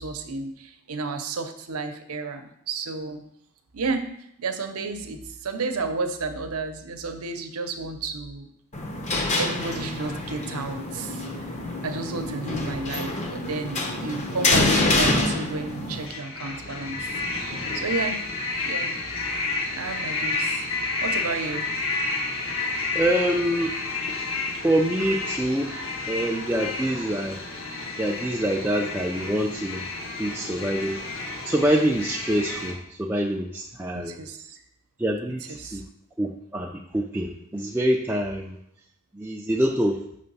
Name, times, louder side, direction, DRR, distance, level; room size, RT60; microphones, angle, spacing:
voice 1, 0.0-3.2 3.7-4.1 4.4-8.5 9.4-11.6 11.8-17.1 17.7-18.2 18.6-19.0 19.7-20.6 21.0-21.7 33.9-34.6 35.5-35.8, right 3 dB, 80° right, 7 dB, 0.7 m, -32 dB
sound 1, 8.7-16.1, left 2 dB, 30° left, 0.7 m, -26 dB
sound 2, 15.6-32.7, left 3 dB, 65° left, 1.3 m, -31 dB
voice 2, 22.9-23.8 24.6-25.7 26.1-27.4 28.0-29.8 30.2-31.0 31.4-34.2 35.0-35.8 36.2-38.6 39.1-40.0, right 1 dB, 10° right, -1 dB, 0.4 m, -25 dB
6.7 x 3.3 x 5.4 m, 0.74 s
head